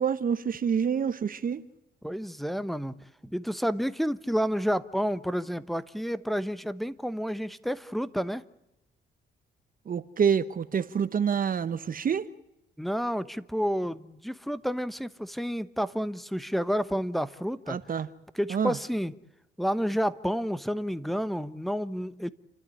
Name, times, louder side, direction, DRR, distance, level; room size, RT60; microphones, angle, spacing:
voice 1, 0.0-1.7 9.9-12.3 17.7-18.1 18.5-18.8, right 7 dB, 45° right, 1.0 m, -27 dB
voice 2, 2.0-2.9 3.2-8.4 12.8-17.8 18.3-19.1 19.6-22.3, equal, ahead, 1.1 m, -30 dB
29.5 x 12.0 x 9.9 m
cardioid pair, 90°, 20 cm